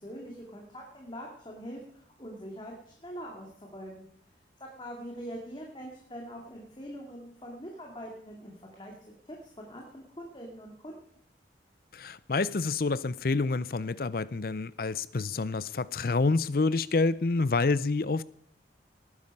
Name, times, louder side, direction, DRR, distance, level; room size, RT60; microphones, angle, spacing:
voice 1, 0.0-4.1 4.6-8.9 9.2-11.0, equal, 25° left, 2.4 m, -43 dB
voice 2, 11.9-18.2, left 3 dB, 55° left, 0.5 m, -28 dB
19.0 x 9.8 x 5.4 m
head